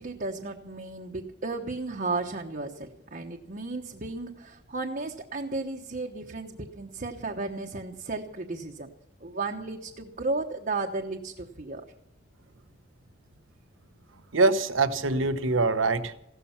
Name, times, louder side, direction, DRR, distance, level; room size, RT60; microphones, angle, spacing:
voice 1, 0.0-8.9 9.2-11.8, right 3 dB, 45° right, 1 dB, 1.1 m, -34 dB
voice 2, 14.3-16.1, right 3 dB, 80° right, 11 dB, 1.0 m, -24 dB
16.0 x 13.0 x 5.8 m, 0.81 s
head